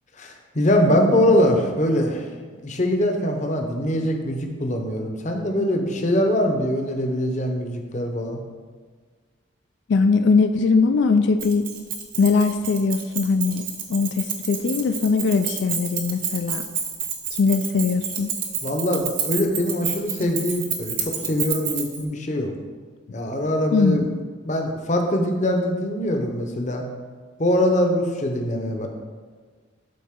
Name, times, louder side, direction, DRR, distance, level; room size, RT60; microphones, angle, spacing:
voice 1, 0.2-2.3 2.6-8.4 18.6-22.5 23.1-24.1 24.5-26.8 27.4-28.9, left 1 dB, 35° left, 3 dB, 0.8 m, -23 dB
voice 2, 9.9-11.6 12.2-13.6 13.9-16.6 17.3-18.3 23.7-24.2, left 4 dB, 60° left, 8 dB, 0.3 m, -20 dB
Keys jangling, 11.4-22.0, right 7 dB, 45° right, 1.0 m, -29 dB
12.0 x 4.1 x 3.7 m, 1.5 s
head